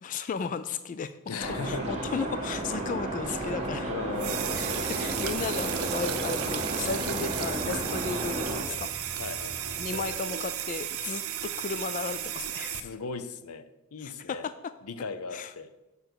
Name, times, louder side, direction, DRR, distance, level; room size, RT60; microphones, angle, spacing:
voice 1, 0.0-1.1 1.5-3.9 4.6-9.2 9.8-12.9 14.0-14.5 15.3-15.5, left 5 dB, 35° left, 12 dB, 0.3 m, -35 dB
voice 2, 1.3-2.1 3.3-3.5 3.9-4.9 9.2-9.8 12.7-14.5 14.8-15.7, left 4 dB, 90° left, 12 dB, 0.6 m, -38 dB
sound 1, 1.4-8.6, right 1 dB, 30° right, 1.5 m, -33 dB
sound 2, 4.2-12.8, right 10 dB, 80° right, 0.7 m, -34 dB
sound 3, 4.4-10.1, equal, 70° left, 3.1 m, -46 dB
6.7 x 5.3 x 6.2 m, 1.0 s
head